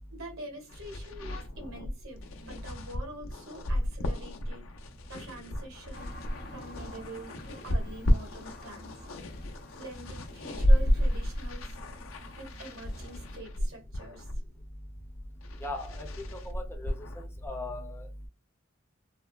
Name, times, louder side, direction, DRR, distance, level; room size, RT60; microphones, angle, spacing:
voice 1, 0.1-4.7 5.1-6.2 6.5-9.5 9.7-11.8 12.4-14.3, right 1 dB, 80° right, 1.3 m, -45 dB
sound 1, 0.7-17.5, equal, 90° left, 0.6 m, -32 dB
sound 2, 5.9-13.4, left 1 dB, 50° left, 0.8 m, -49 dB
voice 2, 15.6-16.1 16.5-18.0, left 2 dB, 10° left, 0.7 m, -38 dB
3.5 x 2.0 x 2.3 m
head